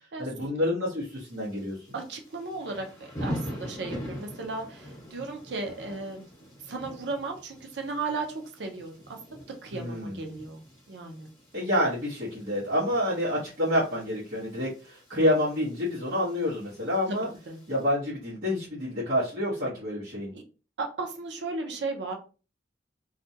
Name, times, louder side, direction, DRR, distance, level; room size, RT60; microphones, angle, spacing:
voice 1, 0.2-1.7 9.7-10.2 11.5-17.3 17.7-20.3, left 1 dB, 55° right, -10 dB, 1.0 m, -28 dB
Thunder / Rain, 1.0-17.9, equal, 15° left, 1.1 m, -43 dB
voice 2, 1.9-6.2 6.7-8.9 9.3-10.6 10.9-11.3 17.1-17.6 20.3-20.4 20.8-22.1, right 3 dB, 75° right, 3 dB, 0.6 m, -35 dB
2.5 x 2.2 x 2.7 m, 0.34 s
head